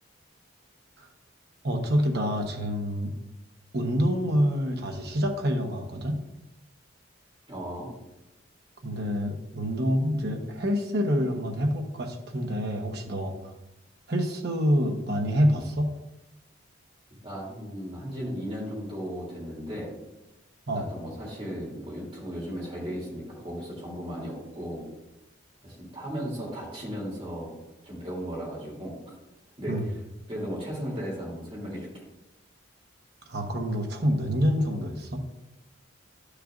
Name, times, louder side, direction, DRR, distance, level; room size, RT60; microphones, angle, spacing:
voice 1, 1.6-3.1 3.7-6.2 8.8-13.5 14.1-15.9 20.7-20.9 29.7-29.8 33.3-35.2, equal, 55° right, 3 dB, 1.0 m, -27 dB
voice 2, 7.5-7.9 17.2-19.9 20.7-24.9 25.6-27.5 27.8-29.0 29.6-29.7 30.3-32.1, equal, 30° right, -5 dB, 3.0 m, -36 dB
11.0 x 6.6 x 2.5 m, 0.95 s
head